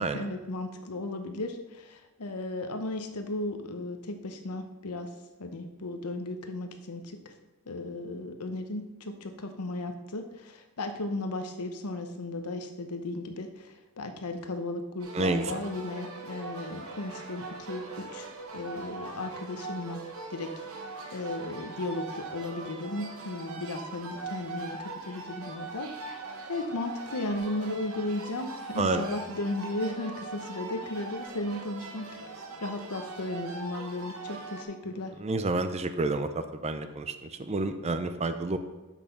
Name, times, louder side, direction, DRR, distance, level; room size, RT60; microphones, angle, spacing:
voice 1, 0.0-5.1 5.4-7.2 7.7-18.3 18.5-20.0 20.3-20.5 20.8-25.9 26.5-35.1, left 2 dB, 85° left, 6 dB, 0.9 m, -35 dB
sound 1, 15.0-34.6, right 3 dB, 65° right, 1.0 m, -41 dB
voice 2, 15.1-15.6 28.8-29.0 35.2-38.6, right 3 dB, 30° right, 9 dB, 0.5 m, -29 dB
6.6 x 5.9 x 5.5 m, 1.1 s
head